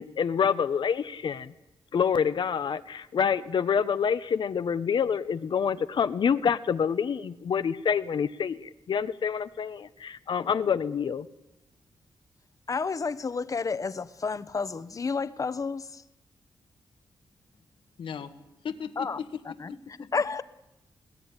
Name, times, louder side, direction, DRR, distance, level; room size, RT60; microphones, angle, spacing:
voice 1, 0.0-1.5 1.9-11.3, left 7 dB, 65° left, 12 dB, 1.0 m, -27 dB
voice 2, 12.7-16.0 19.0-19.2 20.1-20.4, left 4 dB, 40° left, 15 dB, 1.1 m, -30 dB
voice 3, 18.0-18.3 18.6-20.1, left 7 dB, 80° left, 9 dB, 1.9 m, -37 dB
20.5 x 18.5 x 9.9 m, 0.95 s
cardioid pair, 100°, 9 cm